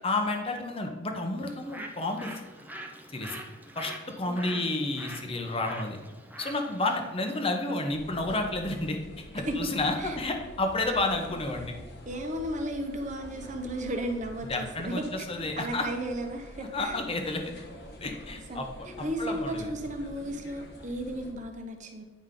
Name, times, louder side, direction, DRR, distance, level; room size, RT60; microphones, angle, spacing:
voice 1, 0.0-2.3 3.1-3.4 3.8-6.0 6.4-9.0 9.3-11.7 14.4-15.9 16.6-17.4 18.0-19.7, left 2 dB, 30° left, 4 dB, 0.9 m, -31 dB
Bird, 1.4-7.6, right 1 dB, 10° right, 0.6 m, -45 dB
voice 2, 4.3-4.6 9.3-9.7 10.0-10.2 12.1-17.0 18.5-18.7 19.0-22.0, right 1 dB, 40° right, 4 dB, 1.0 m, -34 dB
sound 1, 7.9-21.3, equal, 60° left, 1.3 m, -47 dB
9.5 x 5.2 x 3.8 m, 1.3 s
head